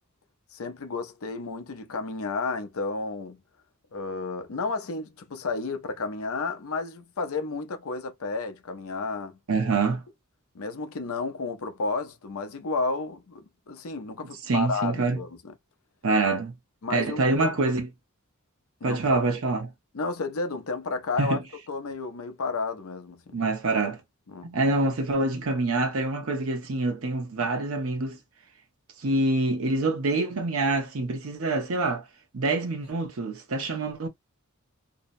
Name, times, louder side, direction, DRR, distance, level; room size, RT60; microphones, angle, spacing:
voice 1, 0.5-3.4 3.9-9.3 10.5-13.4 13.7-15.5 16.8-17.6 18.8-19.2 19.9-21.4 21.7-23.4 24.3-24.5, left 3 dB, 70° left, 0.6 m, -32 dB
voice 2, 9.5-10.0 14.4-15.2 16.0-16.5 16.9-17.9 18.8-19.7 21.2-21.4 23.3-24.0 24.4-28.2 29.0-32.1 32.3-34.1, right 3 dB, 70° right, 0.7 m, -26 dB
2.7 x 2.1 x 2.6 m
head